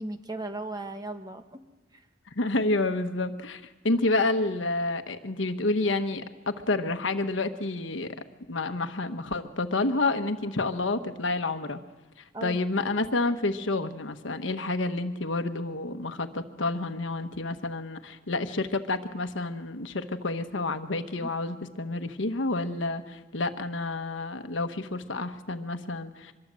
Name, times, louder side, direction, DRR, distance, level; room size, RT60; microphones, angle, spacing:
voice 1, 0.0-1.6 1.9-2.0 12.3-12.6 21.2-21.3, right 2 dB, 20° right, 7 dB, 1.2 m, -36 dB
voice 2, 2.3-8.2 8.5-11.8 12.4-26.3, left 2 dB, 75° left, 8 dB, 1.2 m, -29 dB
25.0 x 22.0 x 7.5 m, 1.2 s
head